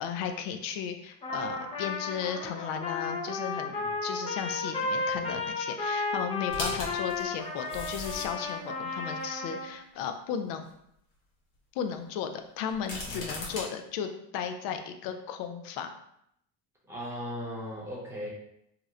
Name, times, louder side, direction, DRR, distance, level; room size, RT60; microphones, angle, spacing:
voice 1, 0.0-10.7 11.7-15.9, left 7 dB, 90° left, 7 dB, 0.5 m, -35 dB
Trumpet, 1.2-9.7, left 3 dB, 15° left, 0.3 m, -33 dB
sound 1, 6.5-8.5 9.2-9.3 12.7-13.7, left 2 dB, 65° left, 1.1 m, -37 dB
voice 2, 16.9-18.3, equal, 5° right, -6 dB, 0.7 m, -38 dB
2.9 x 2.0 x 3.6 m, 0.76 s
cardioid pair, 160°, 40 cm